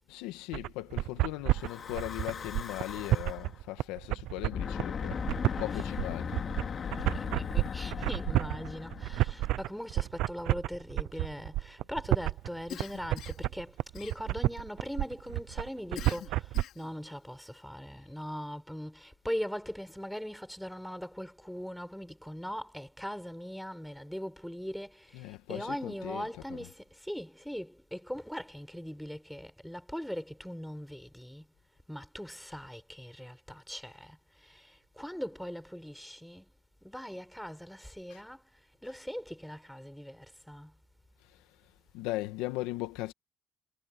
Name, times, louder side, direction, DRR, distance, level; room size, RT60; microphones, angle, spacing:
voice 1, 0.1-5.2 5.6-6.4 25.1-26.3 38.1-38.2 41.9-43.1, left 18 dB, 85° left, 1.9 m, -38 dB
sound 1, 0.5-16.6, right 16 dB, 75° right, 0.6 m, -30 dB
Breathing / Wind, 1.5-3.5 4.4-9.8, left 6 dB, 45° left, 2.9 m, -38 dB
voice 2, 6.7-31.5 31.9-36.5 36.8-38.5 38.8-40.7, equal, ahead, 6.2 m, -40 dB
Cough, 12.7-13.5 13.9-14.6 16.0-17.0, left 12 dB, 70° left, 3.6 m, -45 dB
supercardioid pair, 80°, 0 cm